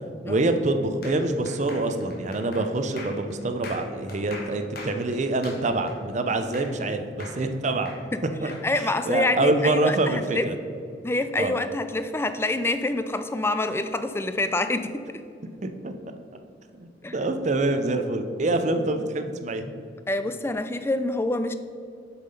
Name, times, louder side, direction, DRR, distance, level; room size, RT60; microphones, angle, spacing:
voice 1, 0.3-7.9 8.4-8.5 8.8-10.5 11.4-11.6 15.6-15.9 16.7-19.7, right 2 dB, 40° right, 7 dB, 0.6 m, -26 dB
sound 1, 1.0-6.9 7.2-8.7, left 3 dB, 55° left, 1.3 m, -42 dB
voice 2, 8.4-10.5 11.0-15.1 17.0-17.2 20.1-21.5, left 2 dB, 15° left, 10 dB, 0.3 m, -26 dB
7.0 x 5.7 x 5.3 m, 2.4 s
head